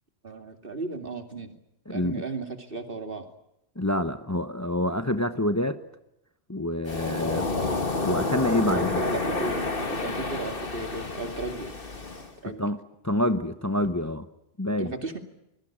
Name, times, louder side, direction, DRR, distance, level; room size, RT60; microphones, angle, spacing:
voice 1, 0.2-1.5 1.9-3.3 8.6-11.7 12.4-12.6 14.8-15.2, right 2 dB, 55° right, 6 dB, 2.8 m, -34 dB
voice 2, 1.9-2.2 3.8-5.8 6.5-7.5 8.0-9.0 12.4-12.8 13.0-14.3 14.6-14.9, left 1 dB, 15° left, 10 dB, 1.0 m, -27 dB
Waves surf, 6.9-12.3, left 3 dB, 55° left, 2.3 m, -29 dB
25.5 x 21.5 x 8.9 m, 0.84 s
omnidirectional pair, 1.1 m